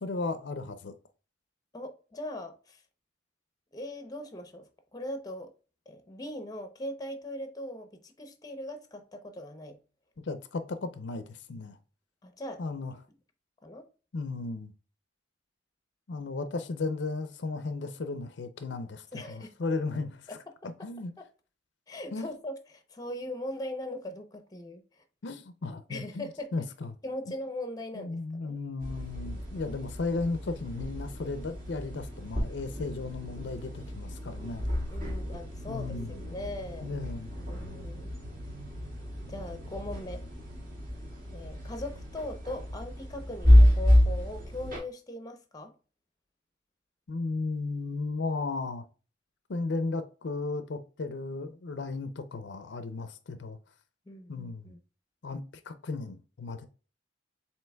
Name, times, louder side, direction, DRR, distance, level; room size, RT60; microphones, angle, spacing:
voice 1, 0.0-0.9 10.2-11.8 12.6-12.9 14.1-14.7 16.1-20.4 20.8-21.1 22.1-22.3 25.2-26.9 27.9-34.7 35.7-36.4 36.8-37.3 47.1-48.9 49.5-53.6 54.3-54.7 55.2-55.4 55.7-56.7, left 3 dB, 65° left, 0.5 m, -35 dB
voice 2, 1.7-2.8 3.7-4.7 4.9-5.5 5.9-9.8 12.2-12.6 13.6-13.9 19.1-19.5 20.3-20.5 20.8-20.9 21.2-21.3 21.9-24.8 25.9-26.5 27.0-28.6 34.9-36.9 37.5-38.1 39.3-40.2 41.3-45.7 54.1-54.8, left 1 dB, 20° left, 0.6 m, -40 dB
sound 1, 28.8-44.8, left 1 dB, 50° right, 2.0 m, -28 dB
7.5 x 2.9 x 2.2 m
head